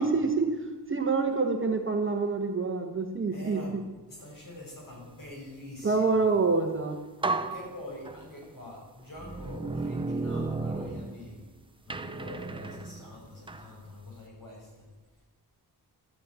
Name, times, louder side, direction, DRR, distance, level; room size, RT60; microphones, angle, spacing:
voice 1, 0.0-3.8 5.8-7.0, right 4 dB, 30° right, 4 dB, 1.1 m, -27 dB
voice 2, 3.3-6.2 7.5-11.4 11.8-14.7, left 2 dB, 50° left, -3 dB, 5.9 m, -44 dB
sound 1, 6.7-6.8 7.2-8.5 9.1-11.5 11.9-13.7, right 3 dB, 15° right, 0.6 m, -34 dB
12.5 x 8.7 x 8.9 m, 1.2 s
wide cardioid pair, 175°, 41 cm